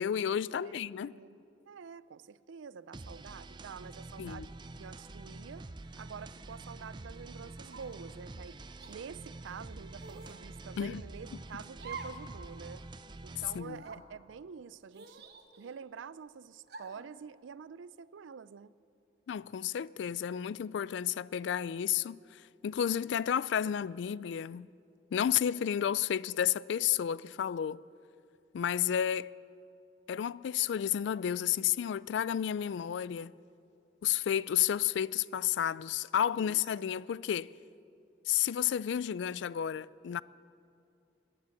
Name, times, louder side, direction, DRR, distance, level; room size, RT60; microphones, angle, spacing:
voice 1, 0.0-1.1 4.2-4.5 10.8-11.0 13.5-13.8 19.3-24.7 25.1-27.8 28.5-29.3 30.1-33.3 34.0-37.5 38.3-40.2, left 9 dB, 70° left, 0.3 m, -31 dB
voice 2, 1.0-1.4 1.7-4.5 4.8-5.7 6.0-8.6 8.9-12.8 13.2-15.2 15.6-18.7 36.3-36.6, right 6 dB, 85° right, 0.4 m, -47 dB
sound 1, 2.9-13.6, right 2 dB, 25° right, 0.4 m, -47 dB
sound 2, 7.7-8.1 8.8-9.0 10.0-10.4 11.8-12.3 12.6-12.7 13.6-14.0 14.9-15.8 16.7-17.1, right 4 dB, 55° right, 1.1 m, -47 dB
18.0 x 10.0 x 7.2 m
head